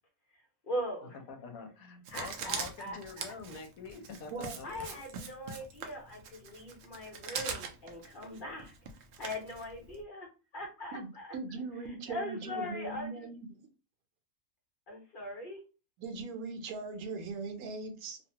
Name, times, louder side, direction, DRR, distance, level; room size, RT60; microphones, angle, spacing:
voice 1, 0.6-1.1 2.1-3.2 4.6-8.7 9.2-10.3 10.5-11.3 11.8-13.3 14.9-15.6, left 1 dB, 40° left, 0.9 m, -40 dB
voice 2, 1.3-4.7, left 4 dB, 75° left, 1.1 m, -46 dB
Writing, 2.1-10.0, right 5 dB, 65° right, 0.7 m, -42 dB
voice 3, 10.9-13.6 16.0-18.2, right 3 dB, 90° right, 1.1 m, -40 dB
2.7 x 2.3 x 2.8 m
omnidirectional pair, 1.5 m